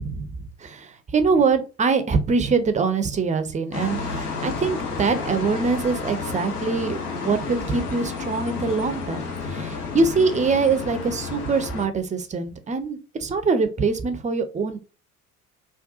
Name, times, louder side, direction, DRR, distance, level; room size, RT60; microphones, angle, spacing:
voice 1, 0.0-14.8, right 4 dB, 15° right, 9 dB, 0.4 m, -24 dB
sound 1, 3.7-11.9, left 4 dB, 85° left, 0.8 m, -31 dB
3.6 x 2.3 x 2.4 m, 0.33 s
figure-of-eight pair, 55°, 45 cm